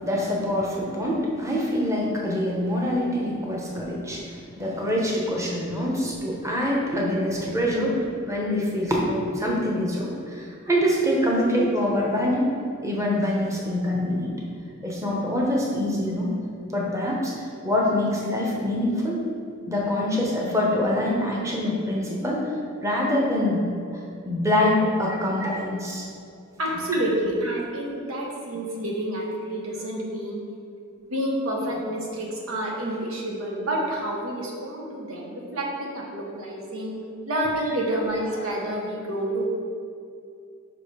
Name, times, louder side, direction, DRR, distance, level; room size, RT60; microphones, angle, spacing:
voice 1, 0.0-12.5 12.8-14.4 14.8-16.3 16.6-19.2 19.7-22.5 22.8-23.7 24.2-26.1 26.9-27.0, left 1 dB, 15° right, -3 dB, 0.9 m, -25 dB
voice 2, 26.6-30.4 31.0-36.9 37.2-39.5, right 1 dB, 80° right, -1 dB, 1.2 m, -29 dB
5.7 x 4.9 x 5.0 m, 2.5 s
head